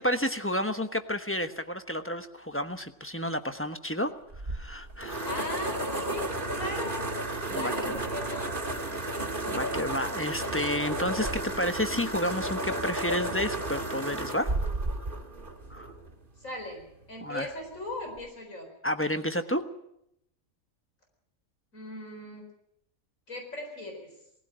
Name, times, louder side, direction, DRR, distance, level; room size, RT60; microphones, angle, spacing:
voice 1, 0.0-4.1 4.5-5.3 7.5-8.0 9.0-14.6 15.7-15.9 17.2-17.5 18.8-19.6, left 1 dB, 10° left, 8 dB, 1.0 m, -31 dB
sound 1, 4.3-16.1, right 1 dB, 40° right, 2.3 m, -32 dB
voice 2, 5.2-7.1 7.5-8.4 16.4-18.7 21.7-22.4 23.3-24.1, left 1 dB, 70° left, 2 dB, 4.7 m, -38 dB
20.5 x 15.5 x 8.8 m, 0.78 s
omnidirectional pair, 1.4 m